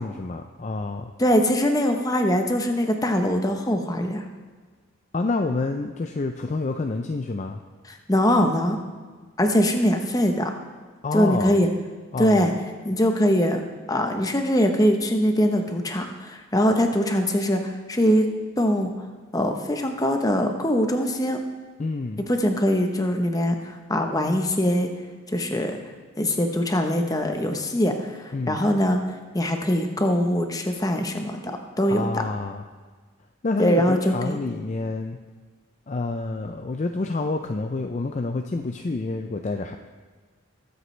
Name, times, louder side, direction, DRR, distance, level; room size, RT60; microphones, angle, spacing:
voice 1, 0.0-1.1 5.1-7.6 11.0-11.6 12.1-12.5 21.8-22.2 28.3-28.6 31.9-32.6 33.4-35.2 35.9-39.8, left 3 dB, 35° left, 5 dB, 0.4 m, -28 dB
voice 2, 1.2-4.2 7.8-8.8 9.4-10.5 11.1-11.7 12.2-12.5 12.8-13.6 13.9-18.3 18.6-18.9 19.3-21.4 22.2-24.9 25.3-25.8 26.2-29.0 29.3-31.5 31.8-32.1 33.6-34.4, equal, 15° left, 5 dB, 0.9 m, -22 dB
21.0 x 8.1 x 3.3 m, 1.4 s
head